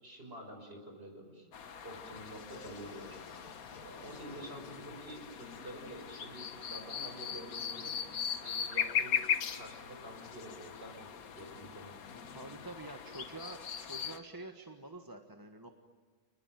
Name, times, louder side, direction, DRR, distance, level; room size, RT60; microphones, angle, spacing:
voice 1, 0.0-1.5 1.8-3.2 3.8-8.0 8.4-9.3 9.5-12.2, right 1 dB, 35° right, 3 dB, 5.9 m, -48 dB
sound 1, 1.5-14.2, left 8 dB, 60° left, 1.5 m, -39 dB
sound 2, 2.5-6.3, left 2 dB, 25° left, 1.8 m, -57 dB
voice 2, 12.3-15.7, right 2 dB, 15° right, 4 dB, 1.4 m, -47 dB
29.0 x 20.5 x 9.3 m, 1.5 s
omnidirectional pair, 1.7 m